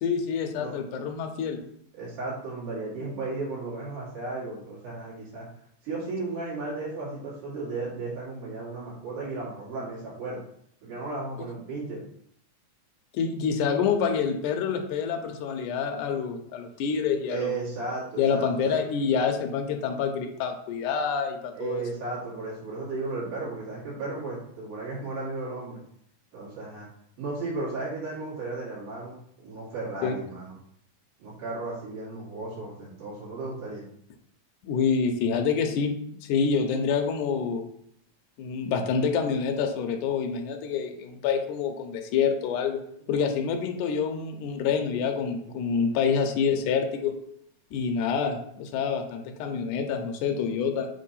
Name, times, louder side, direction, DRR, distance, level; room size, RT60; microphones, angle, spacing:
voice 1, 0.0-1.6 13.1-17.6 18.2-21.8 30.0-30.1 34.6-35.9 36.2-37.7 38.4-42.8 43.1-47.1 47.7-50.9, left 6 dB, 75° left, 3 dB, 2.1 m, -27 dB
voice 2, 1.9-5.5 5.8-10.4 10.8-12.0 17.3-18.8 21.5-25.8 26.3-26.9 27.2-30.5 31.2-33.8, right 3 dB, 75° right, -7 dB, 4.2 m, -34 dB
7.4 x 3.0 x 5.5 m, 0.68 s
omnidirectional pair, 3.7 m